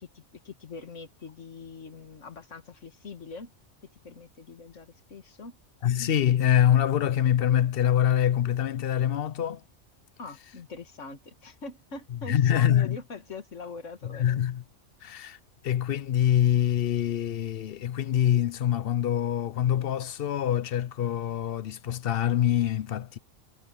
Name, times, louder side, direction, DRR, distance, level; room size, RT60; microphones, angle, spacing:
voice 1, 0.0-3.5 4.0-5.6 10.2-14.4, left 4 dB, 80° left, 2.2 m, -42 dB
voice 2, 5.8-9.6 12.1-13.0 14.0-14.6 15.0-23.2, left 10 dB, 60° left, 0.8 m, -25 dB
omnidirectional pair, 1.2 m